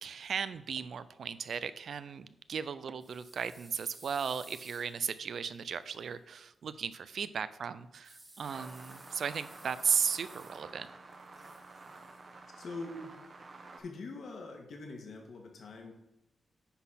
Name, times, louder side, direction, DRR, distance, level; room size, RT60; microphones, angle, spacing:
voice 1, 0.0-10.9, right 6 dB, 60° right, 14 dB, 0.4 m, -36 dB
sound 1, 3.0-6.1 8.0-10.9 11.1-12.2, right 1 dB, 15° right, 1.7 m, -56 dB
sound 2, 8.4-13.8, right 3 dB, 35° right, 0.8 m, -50 dB
voice 2, 12.5-13.1 13.8-15.9, left 3 dB, 60° left, 2 dB, 1.6 m, -43 dB
9.7 x 4.1 x 5.6 m, 0.86 s
wide cardioid pair, 170°, 0 cm